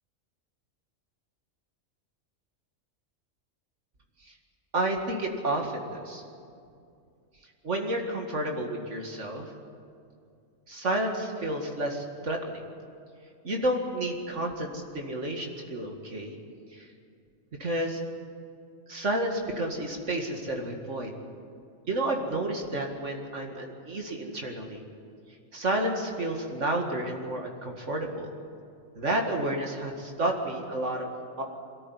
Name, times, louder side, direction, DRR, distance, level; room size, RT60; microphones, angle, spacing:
voice 1, 4.7-6.2 7.6-9.5 10.7-12.6 13.4-16.4 16.7-16.9 17.6-18.0 18.9-21.1 21.9-24.8 25.5-28.3 29.0-31.1 31.4-31.5, right 1 dB, 65° right, 2 dB, 2.4 m, -30 dB
23.5 x 13.5 x 9.8 m, 2.4 s
omnidirectional pair, 1.3 m